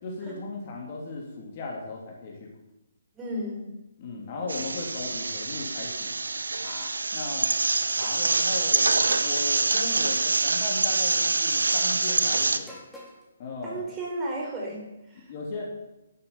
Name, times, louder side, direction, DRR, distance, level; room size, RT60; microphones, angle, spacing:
voice 1, 0.0-2.5 4.0-6.2 6.6-7.5 7.9-12.8 13.4-13.8 15.1-15.6, left 3 dB, 35° left, -1 dB, 3.3 m, -37 dB
voice 2, 3.1-3.7 4.4-4.5 13.6-15.3, right 1 dB, 15° right, -3 dB, 4.6 m, -34 dB
sound 1, 4.5-12.6, right 3 dB, 65° right, 1.0 m, -25 dB
sound 2, 9.1-9.4 10.6-10.9 12.6-13.3, left 1 dB, ahead, 3.9 m, -45 dB
12.5 x 11.0 x 7.3 m, 0.93 s
figure-of-eight pair, 135°, 0 cm